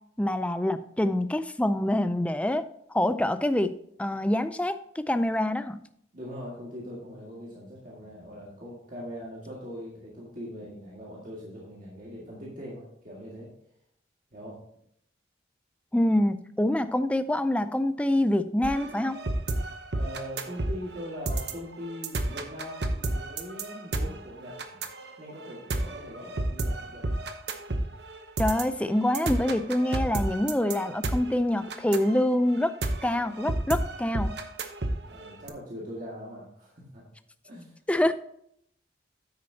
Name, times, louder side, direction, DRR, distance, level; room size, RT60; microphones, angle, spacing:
voice 1, 0.2-3.7 4.0-5.8 15.9-19.2 28.4-32.7 33.0-34.3 37.9-38.1, left 1 dB, 5° left, 11 dB, 0.4 m, -26 dB
voice 2, 6.1-13.5 14.3-14.6 19.9-27.2 35.1-37.1 37.4-37.8, equal, 45° right, -5 dB, 2.0 m, -41 dB
sound 1, 18.6-35.5, right 2 dB, 60° right, 0.9 m, -32 dB
9.5 x 8.5 x 2.8 m, 0.70 s
head